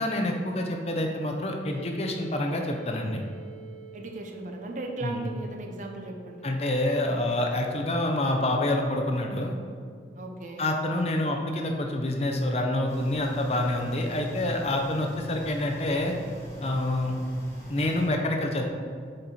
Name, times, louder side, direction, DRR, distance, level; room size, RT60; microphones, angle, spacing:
voice 1, 0.0-3.2 5.0-5.2 6.4-9.5 10.6-16.1 16.6-17.2 17.7-18.6, left 1 dB, 35° left, 2 dB, 0.6 m, -27 dB
sound 1, 1.7-13.4, right 7 dB, 75° right, 0.9 m, -50 dB
voice 2, 3.9-6.5 10.2-10.7, right 2 dB, 45° right, 2 dB, 0.6 m, -37 dB
sound 2, 12.9-18.1, equal, 15° left, 1.4 m, -41 dB
6.5 x 4.1 x 4.3 m, 2.1 s
head